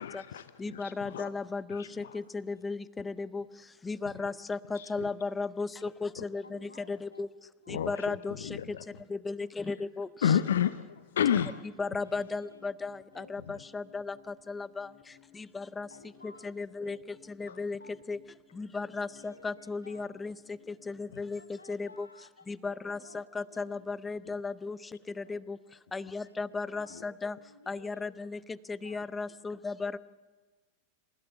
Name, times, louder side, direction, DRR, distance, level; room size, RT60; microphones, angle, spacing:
voice 1, 0.0-1.3 1.7-2.1 4.1-4.3 4.7-5.1 6.2-6.3 7.7-9.0 10.2-11.5 13.5-13.6 17.5-17.6 21.1-21.2 24.2-24.4 26.9-27.0, left 9 dB, 60° left, 15 dB, 0.6 m, -31 dB
voice 2, 0.6-3.4 3.8-7.3 7.7-8.5 9.1-10.1 11.8-14.2 14.5-14.9 15.3-15.9 16.2-17.0 17.4-17.8 18.1-18.2 18.6-20.3 20.9-21.4 21.7-22.1 22.5-24.8 25.2-25.6 25.9-27.4 27.7-30.0, left 4 dB, 15° left, 19 dB, 0.6 m, -35 dB
voice 3, 1.8-2.2 2.5-2.6 6.4-7.5 7.8-8.1 9.6-9.9 11.4-11.6 12.0-12.7 13.1-13.4 15.9-16.5 16.8-17.1 17.5-18.0 19.0-20.2 21.4-22.4 22.9-23.7 25.2-25.4 26.3-26.4 26.7-27.0 27.4-28.1 28.8-29.1, left 2 dB, 80° left, 9 dB, 1.5 m, -55 dB
sound 1, 11.7-21.1, left 10 dB, 30° left, 1.9 m, -61 dB
27.5 x 16.0 x 7.3 m, 1.4 s
figure-of-eight pair, 90°, 0 cm